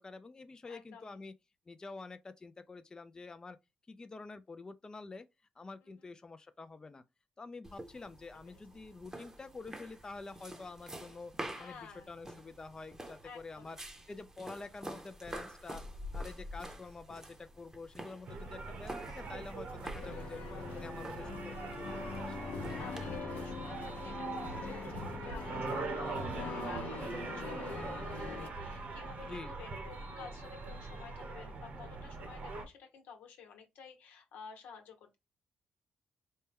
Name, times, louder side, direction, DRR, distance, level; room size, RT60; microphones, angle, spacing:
voice 1, 0.0-1.3 1.7-3.6 3.9-5.2 5.6-7.0 7.4-11.3 11.6-13.8 14.1-15.8 16.1-20.4 20.7-22.4 29.3-29.5, left 3 dB, 25° left, 0.4 m, -48 dB
voice 2, 0.7-1.2 5.8-6.1 8.4-8.8 11.5-12.1 13.2-13.8 18.3-18.6 22.8-35.2, left 6 dB, 90° left, 1.0 m, -52 dB
sound 1, 7.6-23.2, equal, 15° right, 0.8 m, -48 dB
sound 2, 18.3-32.6, right 3 dB, 65° right, 1.0 m, -42 dB
sound 3, 20.0-28.5, left 5 dB, 75° left, 0.6 m, -43 dB
4.2 x 2.2 x 3.4 m
cardioid pair, 80°, 3 cm